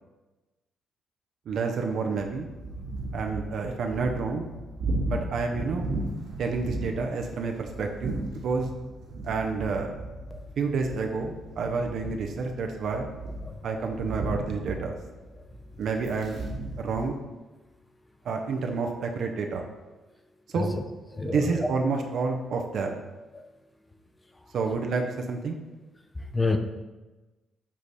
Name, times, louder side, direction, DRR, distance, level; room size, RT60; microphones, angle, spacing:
voice 1, 1.5-2.5 3.1-4.4 5.1-5.9 6.4-8.7 9.2-10.0 10.6-13.1 13.6-14.9 15.8-16.4 16.8-17.2 18.2-19.7 20.5-20.7 21.3-23.0 24.5-25.6, right 4 dB, 65° right, 3 dB, 0.6 m, -29 dB
sound 1, 2.2-17.1, right 2 dB, 85° right, 1.9 m, -36 dB
voice 2, 21.1-21.7 23.3-23.5 26.1-26.6, left 3 dB, 15° left, 6 dB, 0.6 m, -30 dB
7.3 x 3.2 x 4.1 m, 1.1 s
cardioid pair, 90°, 0 cm